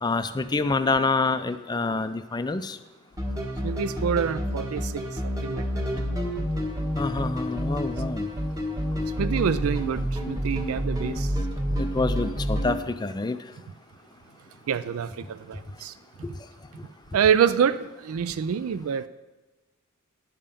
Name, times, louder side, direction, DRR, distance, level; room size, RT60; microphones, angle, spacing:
voice 1, 0.0-2.8 7.0-8.3 11.8-13.4 16.2-16.3, left 3 dB, 20° left, 11 dB, 0.4 m, -27 dB
sound 1, 3.2-12.8, equal, 15° right, 1.3 m, -29 dB
voice 2, 3.6-5.9 9.2-11.4 14.7-15.9 17.1-19.1, right 7 dB, 85° right, 14 dB, 0.4 m, -26 dB
9.8 x 5.5 x 6.7 m, 1.1 s
head